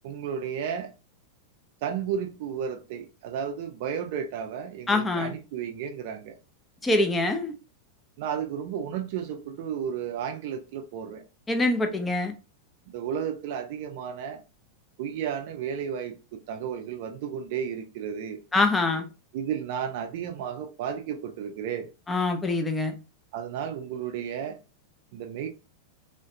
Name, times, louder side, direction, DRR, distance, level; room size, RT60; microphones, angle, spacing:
voice 1, 0.0-0.9 1.8-6.4 8.2-11.2 12.9-14.4 15.0-18.4 19.3-21.9 23.3-24.6 25.1-25.5, right 8 dB, 50° right, 0.4 m, -33 dB
voice 2, 4.9-5.3 6.8-7.5 11.5-12.3 18.5-19.0 22.1-22.9, left 2 dB, 15° left, 0.4 m, -24 dB
2.3 x 2.1 x 2.6 m
figure-of-eight pair, 90°, 0 cm